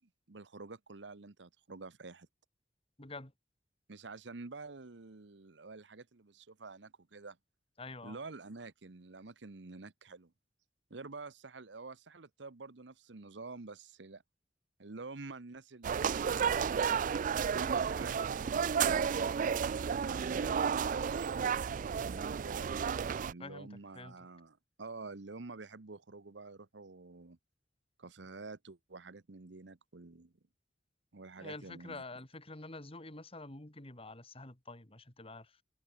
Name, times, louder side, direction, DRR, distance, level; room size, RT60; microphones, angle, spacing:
voice 1, 0.3-2.3 3.9-7.4 8.0-10.3 10.9-14.2 14.8-16.6 17.4-19.4 20.0-22.7 23.3-27.4 28.0-30.3 31.1-32.0, right 3 dB, 75° right, 1.0 m, -48 dB
voice 2, 3.0-3.3 7.8-8.2 23.4-24.1 31.4-35.6, left 2 dB, 30° left, 2.9 m, -47 dB
sound 1, 15.8-23.3, right 7 dB, 45° right, 0.3 m, -32 dB
head